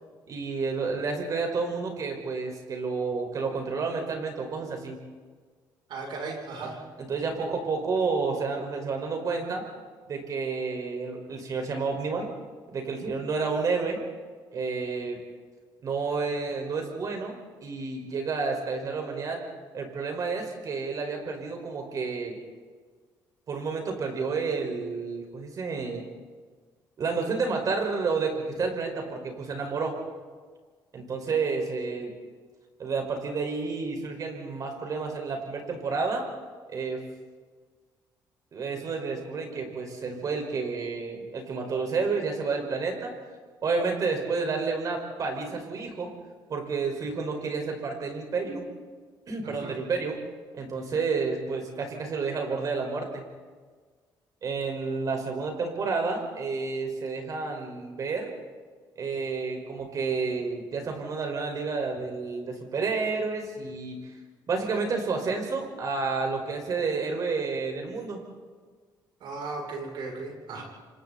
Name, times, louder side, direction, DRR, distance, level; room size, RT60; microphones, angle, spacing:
voice 1, 0.3-5.0 6.6-6.7 7.0-9.7 10.1-12.3 12.7-14.0 14.5-15.2 15.8-17.4 17.6-19.4 19.7-22.4 23.5-26.0 27.0-30.0 30.9-32.1 32.8-36.2 36.7-37.0 38.5-43.1 43.6-46.1 46.5-48.6 49.3-50.2 50.5-53.2 54.4-58.3 59.0-64.0 64.5-68.2 70.5-70.6, right 4 dB, 45° right, 3 dB, 5.4 m, -30 dB
voice 2, 5.9-6.8 49.4-49.7 69.2-70.6, right 3 dB, 75° right, 0 dB, 7.5 m, -36 dB
29.0 x 26.0 x 4.3 m, 1.5 s
cardioid pair, 120°, 8 cm